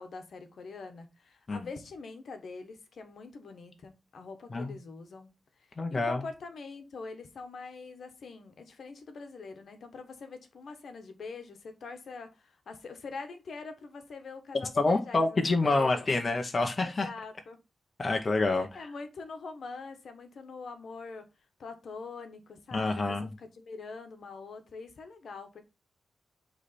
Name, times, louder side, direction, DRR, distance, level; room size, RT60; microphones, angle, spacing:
voice 1, 0.0-5.3 5.7-16.1 16.8-17.6 18.5-21.3 21.6-25.6, left 4 dB, 65° left, 1.1 m, -44 dB
voice 2, 5.8-6.2 14.8-17.1 18.0-18.9 22.7-23.3, left 3 dB, 30° left, 0.8 m, -27 dB
8.2 x 3.3 x 4.1 m
wide cardioid pair, 175°, 0 cm